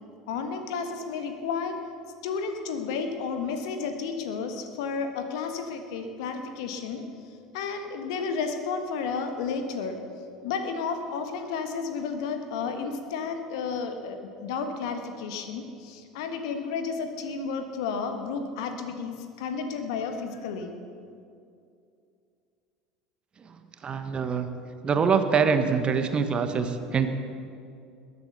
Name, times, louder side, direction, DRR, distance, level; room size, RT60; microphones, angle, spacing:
voice 1, 0.3-1.8 2.2-7.0 7.5-10.0 10.4-20.7, left 5 dB, 60° left, 6 dB, 1.5 m, -32 dB
voice 2, 23.4-24.5 24.8-27.1, right 6 dB, 30° right, 8 dB, 1.3 m, -25 dB
20.5 x 8.4 x 7.1 m, 2.4 s
figure-of-eight pair, 70°, 3 cm